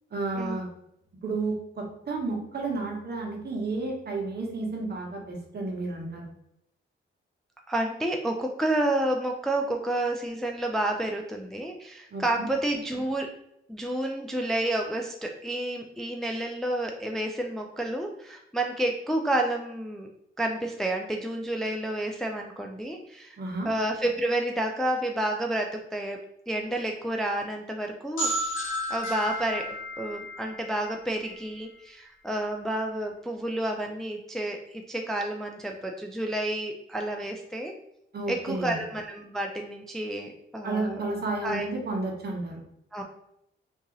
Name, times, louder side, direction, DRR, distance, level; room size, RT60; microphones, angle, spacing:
voice 1, 0.1-0.7 1.2-6.3 12.1-12.5 23.4-23.7 38.1-38.8 40.6-42.6, right 3 dB, 50° right, 0 dB, 1.0 m, -32 dB
voice 2, 7.7-13.3 13.7-20.1 20.4-23.4 23.6-26.2 26.5-28.3 28.9-37.7 38.3-41.0 41.4-41.6 42.9-43.0, right 1 dB, ahead, 2 dB, 0.3 m, -30 dB
sound 1, 28.2-31.8, equal, 70° left, 0.9 m, -33 dB
2.8 x 2.7 x 3.8 m, 0.77 s
cardioid pair, 95°, 21 cm